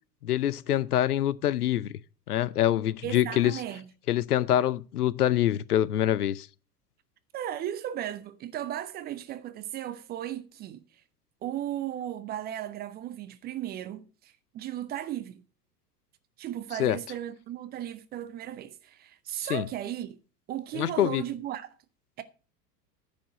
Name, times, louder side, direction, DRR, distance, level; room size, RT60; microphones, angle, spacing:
voice 1, 0.2-1.9 2.3-3.6 4.1-6.5 16.8-17.0 19.4-19.7 20.7-21.2, left 12 dB, 65° left, 0.6 m, -25 dB
voice 2, 3.0-3.9 7.3-10.8 11.4-15.4 16.4-20.2 20.5-21.7 22.2-22.3, right 12 dB, 20° right, 0.6 m, -36 dB
10.0 x 5.1 x 7.6 m
figure-of-eight pair, 85°, 48 cm